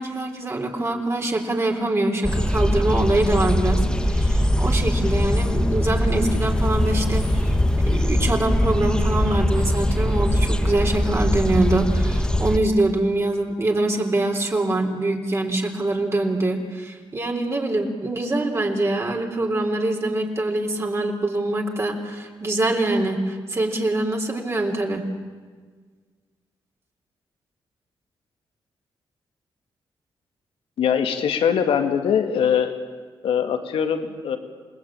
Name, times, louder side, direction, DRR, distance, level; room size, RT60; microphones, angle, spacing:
voice 1, 0.0-7.6 7.8-25.1, right 2 dB, 30° right, 1 dB, 3.8 m, -24 dB
sound 1, 2.2-12.6, left 1 dB, 10° left, 1.6 m, -21 dB
voice 2, 30.8-32.7 33.2-34.4, left 8 dB, 90° left, 7 dB, 2.3 m, -22 dB
28.5 x 20.0 x 9.1 m, 1.5 s
cardioid pair, 95°, 9 cm